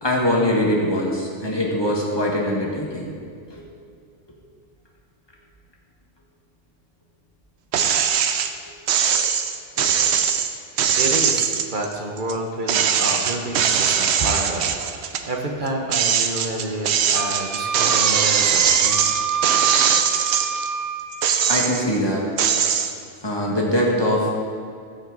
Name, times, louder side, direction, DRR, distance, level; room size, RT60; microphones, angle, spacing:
voice 1, 0.0-3.1 3.5-3.6 9.8-9.9 21.5-22.2 23.2-24.4, equal, 20° left, -3 dB, 1.6 m, -22 dB
sound 1, 7.7-8.5 8.9-12.3 12.7-15.3 15.7-20.7 21.1-22.0 22.4-22.9, right 8 dB, 70° right, 0.8 m, -21 dB
voice 2, 11.0-19.2, right 1 dB, 45° right, 1 dB, 1.1 m, -29 dB
Wind instrument woodwind instrument, 17.1-21.5, right 6 dB, 25° right, 0.4 m, -27 dB
14.5 x 6.0 x 3.9 m, 2.3 s
omnidirectional pair, 1.2 m